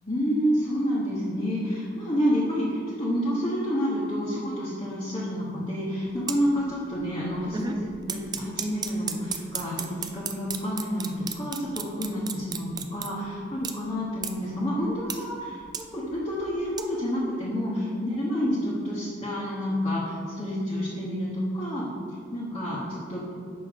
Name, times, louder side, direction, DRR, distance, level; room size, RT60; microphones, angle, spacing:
voice 1, 0.1-23.2, equal, 25° left, -8 dB, 1.2 m, -29 dB
sound 1, 6.1-6.4 6.8-7.1 7.3-13.1 13.6-13.7 14.2-14.3 14.8-15.2 15.4-16.8, right 6 dB, 20° right, 0.4 m, -33 dB
6.1 x 5.3 x 5.2 m, 2.2 s
head